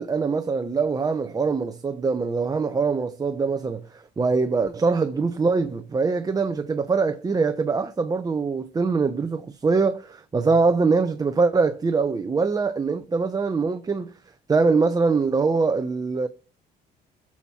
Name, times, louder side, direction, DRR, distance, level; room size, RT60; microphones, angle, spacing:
voice 1, 0.0-14.1 14.5-16.3, right 4 dB, 20° right, 0.9 m, -23 dB
22.0 x 7.3 x 4.4 m
cardioid pair, 110°, 17 cm